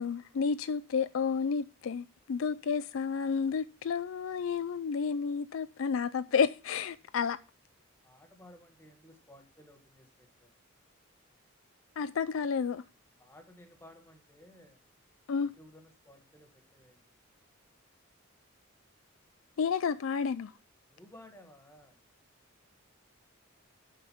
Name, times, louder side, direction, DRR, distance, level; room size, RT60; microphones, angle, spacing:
voice 1, 0.0-7.4 12.0-12.8 15.3-15.5 19.6-20.5, left 6 dB, 65° left, 0.4 m, -31 dB
voice 2, 8.0-10.6 13.2-14.9 15.4-17.2 20.9-22.0, left 1 dB, 10° left, 1.4 m, -56 dB
7.5 x 5.2 x 7.0 m
head